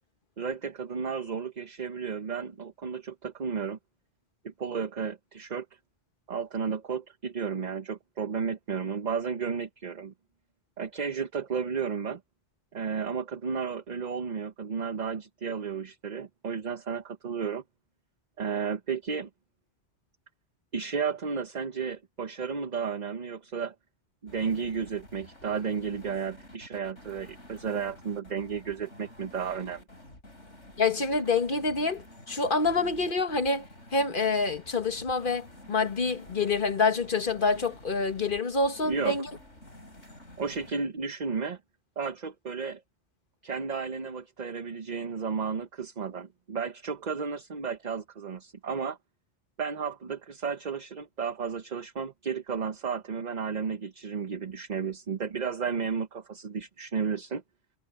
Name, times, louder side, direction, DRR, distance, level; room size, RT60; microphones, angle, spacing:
voice 1, 0.4-3.8 4.4-5.7 6.3-10.1 10.8-12.2 12.7-17.6 18.4-19.3 20.7-23.7 24.2-29.8 38.8-39.2 40.4-41.6 42.0-42.8 43.4-49.0 49.6-57.4, right 6 dB, 40° right, 0.9 m, -33 dB
sound 1, 24.3-40.7, left 1 dB, 85° left, 6.7 m, -50 dB
voice 2, 30.8-33.6 33.9-39.3, left 4 dB, 50° left, 1.6 m, -27 dB
omnidirectional pair, 1.2 m